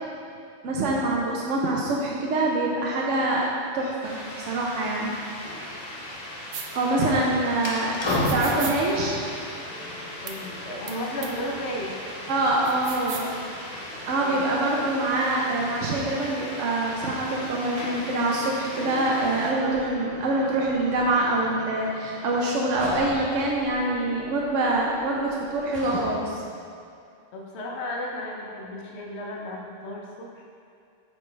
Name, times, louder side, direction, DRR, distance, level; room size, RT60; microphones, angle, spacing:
voice 1, 0.6-3.5 3.7-5.1 6.8-7.9 8.3-9.2 12.3-13.3 14.1-26.4, right 2 dB, 80° right, -3 dB, 1.0 m, -25 dB
sound 1, 4.0-19.5, left 1 dB, 35° right, 1.6 m, -38 dB
sound 2, 6.5-6.7 8.1-8.8 10.3-10.4 10.9-11.0 11.2-11.3 12.6-13.3, right 7 dB, 60° right, 0.8 m, -36 dB
voice 2, 7.0-7.3 10.2-12.0 14.2-14.5 27.3-30.4, left 1 dB, 65° left, -1 dB, 1.1 m, -34 dB
sound 3, 7.6-26.5, left 1 dB, 25° left, 0.7 m, -37 dB
8.3 x 4.5 x 3.2 m, 2.4 s
omnidirectional pair, 1.3 m